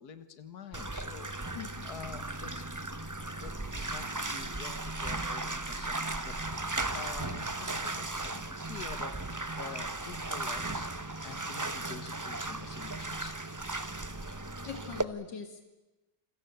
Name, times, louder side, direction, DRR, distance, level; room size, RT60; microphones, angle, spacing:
voice 1, 0.0-2.6 3.0-9.1 9.5-13.3, left 6 dB, 65° left, 11 dB, 2.2 m, -48 dB
Bathtub (filling or washing), 0.7-15.0, right 2 dB, 15° right, 0.7 m, -36 dB
voice 2, 1.5-1.9 14.7-15.6, left 7 dB, 80° left, 6 dB, 2.6 m, -42 dB
29.0 x 22.0 x 8.2 m, 1.1 s
omnidirectional pair, 1.9 m